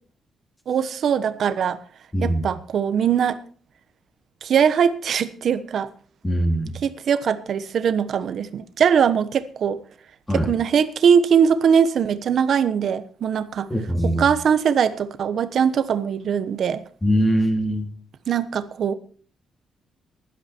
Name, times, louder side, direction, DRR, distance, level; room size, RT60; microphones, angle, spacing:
voice 1, 0.7-1.8 2.2-3.4 4.4-5.9 6.8-9.8 10.5-13.7 14.0-16.8 18.3-18.9, right 7 dB, 50° right, 1.1 m, -21 dB
voice 2, 6.2-6.7 10.3-10.5 13.7-14.2 17.0-17.9, equal, 10° left, 2.7 m, -21 dB
16.0 x 11.5 x 4.5 m
cardioid pair, 165°, 0 cm